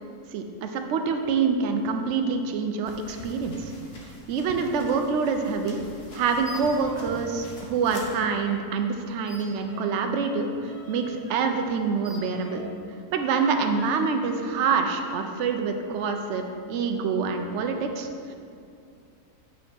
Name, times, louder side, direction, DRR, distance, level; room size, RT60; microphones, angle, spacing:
voice 1, 0.3-3.7 4.3-5.8 6.1-12.6 13.1-18.3, right 5 dB, 60° right, 5 dB, 0.8 m, -26 dB
sound 1, 2.8-8.2, left 1 dB, 45° left, 1.1 m, -44 dB
sound 2, 6.4-7.3 7.5-8.6 9.3-12.8 13.4-14.1, right 1 dB, 10° left, 0.5 m, -46 dB
6.7 x 5.6 x 4.4 m, 2.4 s
omnidirectional pair, 1.6 m